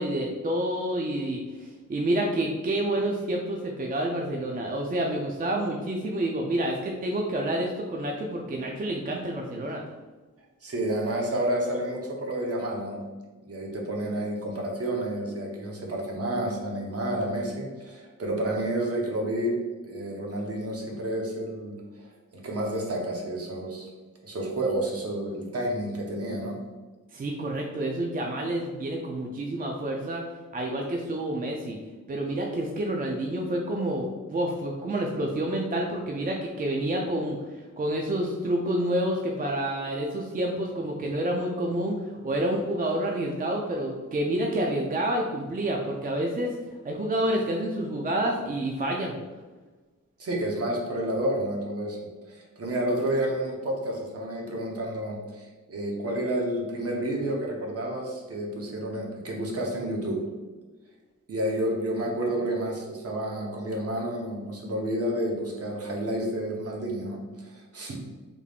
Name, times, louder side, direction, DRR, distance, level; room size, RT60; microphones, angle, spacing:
voice 1, 0.0-9.8 27.1-30.2 30.5-31.8 32.1-46.6 46.8-49.1, right 1 dB, 30° right, 0 dB, 0.4 m, -28 dB
voice 2, 10.6-13.0 13.4-23.9 24.2-26.6 50.2-60.2 61.3-68.0, right 1 dB, 50° right, 0 dB, 0.8 m, -30 dB
3.5 x 3.4 x 2.4 m, 1.3 s
wide cardioid pair, 95°, 31 cm